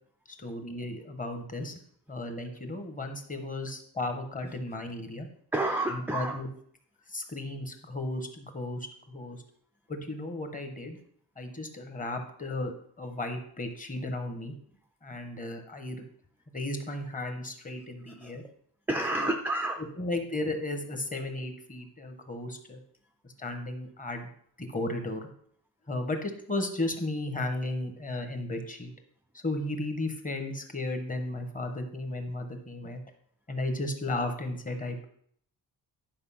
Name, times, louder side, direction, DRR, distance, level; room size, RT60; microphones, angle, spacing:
voice 1, 0.4-1.8 2.1-5.3 5.9-6.5 7.1-9.4 9.9-11.0 11.4-14.5 15.0-16.0 16.5-18.4 19.2-19.3 20.0-22.8 23.4-24.3 24.6-25.3 25.9-28.9 29.4-33.0 33.5-35.0, left 2 dB, 20° left, 5 dB, 1.1 m, -34 dB
voice 2, 5.5-6.4 18.1-18.4 18.9-19.8, right 2 dB, 5° right, 4 dB, 0.4 m, -30 dB
10.5 x 4.8 x 5.7 m, 0.63 s
wide cardioid pair, 175°, 39 cm